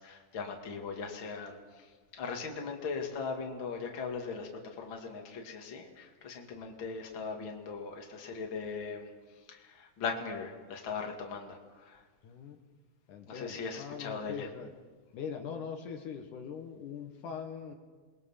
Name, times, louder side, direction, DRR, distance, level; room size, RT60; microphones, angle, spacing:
voice 1, 0.0-1.9 2.1-4.5 4.8-9.1 9.5-12.0 13.3-14.5, left 5 dB, 40° left, 2 dB, 2.7 m, -39 dB
voice 2, 12.2-12.6 13.1-14.7 15.1-17.7, left 7 dB, 75° left, 4 dB, 2.9 m, -42 dB
28.0 x 21.5 x 5.7 m, 1.4 s
omnidirectional pair, 3.7 m